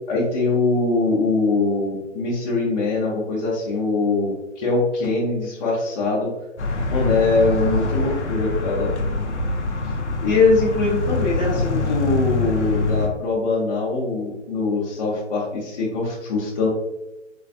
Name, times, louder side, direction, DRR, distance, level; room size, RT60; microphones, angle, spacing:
voice 1, 0.1-6.3 6.9-8.9 9.8-9.9 10.2-16.7, left 3 dB, 35° left, -6 dB, 0.9 m, -22 dB
sound 1, 6.6-13.1, left 3 dB, 60° left, 0.8 m, -24 dB
4.0 x 3.1 x 2.4 m, 0.97 s
hypercardioid pair, 145°, 38 cm